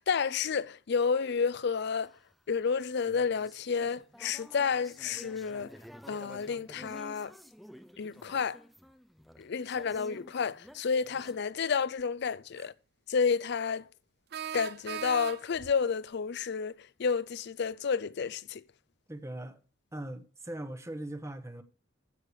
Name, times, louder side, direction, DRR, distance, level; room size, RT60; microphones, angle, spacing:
voice 1, 0.0-2.2 2.5-5.8 6.1-7.3 8.0-8.6 9.4-12.7 13.1-13.9 14.5-18.6, left 6 dB, 60° left, 0.5 m, -30 dB
sound 1, 2.0-11.4, equal, ahead, 0.5 m, -52 dB
sound 2, 12.0-12.1 14.3-15.7, right 8 dB, 60° right, 0.5 m, -39 dB
voice 2, 19.1-19.6 19.9-21.6, right 1 dB, 15° right, 1.0 m, -40 dB
15.5 x 6.5 x 3.1 m
head